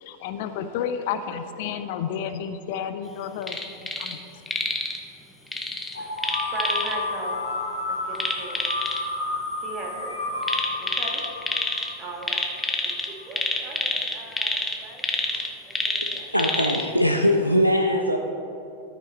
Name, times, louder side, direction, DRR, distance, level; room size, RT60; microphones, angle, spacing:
voice 1, 0.0-4.3, left 8 dB, 50° left, 10 dB, 0.5 m, -31 dB
sound 1, 3.4-4.2 4.5-5.0 5.5-6.9 8.1-9.0 10.4-11.9 12.2-16.9 17.3-17.4, left 2 dB, 10° left, 0.9 m, -27 dB
sound 2, 5.9-12.7, left 2 dB, 80° left, 1.2 m, -31 dB
voice 2, 6.0-7.4 8.0-8.6 9.5-10.2 10.8-11.2 12.0-12.5 12.8-12.9 13.3-15.1 15.6-16.3, right 2 dB, 30° right, -1 dB, 1.9 m, -39 dB
voice 3, 16.3-18.2, equal, 90° right, 3 dB, 0.5 m, -21 dB
13.5 x 6.2 x 4.2 m, 3.0 s
figure-of-eight pair, 90°, 0 cm